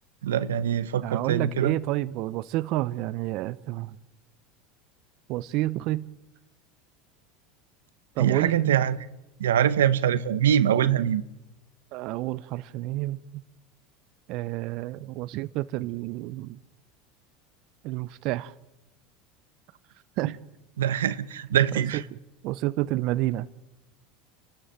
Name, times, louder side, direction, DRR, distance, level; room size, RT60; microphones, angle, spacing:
voice 1, 0.2-1.8 8.2-9.0 9.4-11.2 20.2-20.3 20.8-22.0, right 10 dB, 90° right, 0.9 m, -23 dB
voice 2, 1.0-3.9 5.3-6.1 8.2-8.8 10.9-11.0 11.9-13.2 14.3-16.6 17.8-18.5 20.2-20.4 22.4-23.5, right 17 dB, 60° right, 0.8 m, -29 dB
28.5 x 13.0 x 9.1 m
hypercardioid pair, 95°, 0 cm